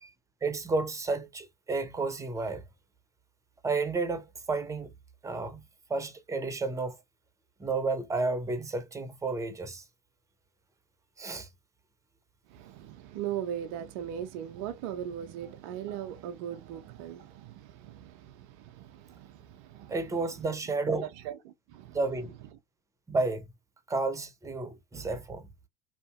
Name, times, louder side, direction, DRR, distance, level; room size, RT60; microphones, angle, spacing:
voice 1, 0.4-2.6 3.6-4.9 5.2-5.6 5.9-7.0 7.6-9.8 11.2-11.5 19.9-21.1 21.9-22.3 23.1-23.4 23.9-25.4, right 3 dB, 15° right, 0.7 m, -31 dB
voice 2, 12.5-20.0 20.5-20.6 21.0-22.0, right 10 dB, 55° right, 0.5 m, -39 dB
2.7 x 2.5 x 2.3 m
figure-of-eight pair, 65°, 20 cm